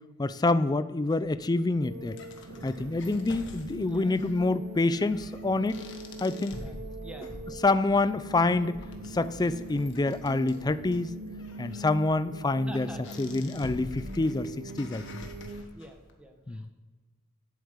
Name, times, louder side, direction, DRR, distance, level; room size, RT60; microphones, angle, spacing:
voice 1, 0.2-2.2 2.6-5.8 6.2-6.6 7.6-8.8 9.1-11.1 11.6-12.9 13.2-14.5 14.8-15.2 16.5-16.7, left 2 dB, 20° left, 14 dB, 0.4 m, -27 dB
sound 1, 1.1-16.1, left 2 dB, 65° left, 1.4 m, -47 dB
sound 2, 1.8-15.6, right 2 dB, 90° right, 0.8 m, -42 dB
voice 2, 3.8-4.2 6.5-7.6 10.0-10.2 12.7-13.5 15.7-16.7, equal, 5° right, 4 dB, 1.2 m, -48 dB
8.4 x 8.2 x 8.0 m, 1.4 s
head